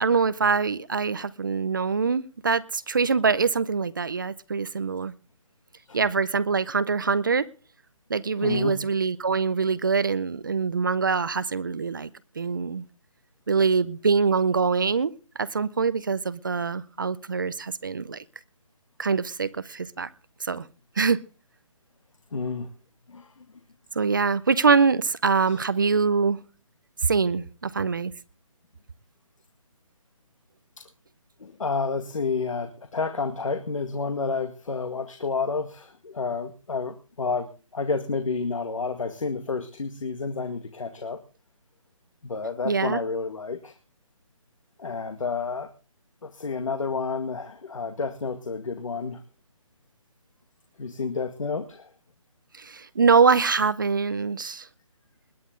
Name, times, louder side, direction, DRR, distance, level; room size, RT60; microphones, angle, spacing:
voice 1, 0.0-5.1 5.9-7.5 8.1-12.1 12.4-12.8 13.5-15.1 15.4-18.2 19.0-20.1 20.4-20.7 21.0-21.2 24.0-26.4 27.0-28.1 42.6-43.0 52.6-54.7, right 5 dB, 35° right, 17 dB, 0.6 m, -24 dB
voice 2, 8.4-8.8 22.3-22.7 23.1-23.5 25.5-25.6 30.8-30.9 31.4-41.2 42.2-43.8 44.8-45.7 46.2-49.2 50.8-51.9, left 4 dB, 65° left, 8 dB, 1.9 m, -30 dB
21.0 x 10.5 x 3.8 m, 0.35 s
hypercardioid pair, 170°, 18 cm